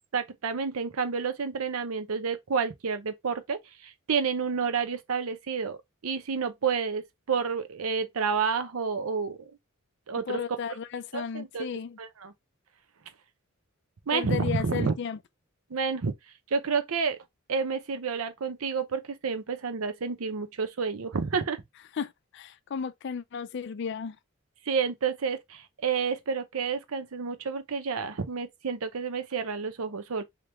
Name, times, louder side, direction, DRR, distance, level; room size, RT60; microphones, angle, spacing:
voice 1, 0.1-7.0 7.3-9.6 10.1-10.4 11.1-11.7 12.0-12.3 14.1-14.9 15.7-16.1 16.5-17.2 17.5-21.6 24.7-30.2, right 5 dB, 85° right, 0.7 m, -30 dB
voice 2, 10.3-12.0 14.1-15.2 22.0-24.2, left 6 dB, 55° left, 0.4 m, -34 dB
3.4 x 2.9 x 2.9 m
head